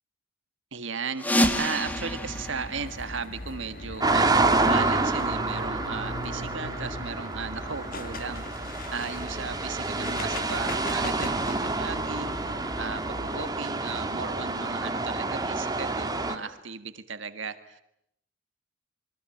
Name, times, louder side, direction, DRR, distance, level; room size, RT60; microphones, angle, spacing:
voice 1, 0.7-17.8, right 5 dB, 65° right, 10 dB, 1.6 m, -36 dB
sound 1, 1.2-3.8, equal, 10° left, 2.0 m, -28 dB
sound 2, 1.8-13.5, left 1 dB, 45° left, 1.4 m, -39 dB
sound 3, 4.0-16.4, right 3 dB, 20° right, 1.9 m, -28 dB
27.5 x 23.0 x 9.1 m, 0.77 s
head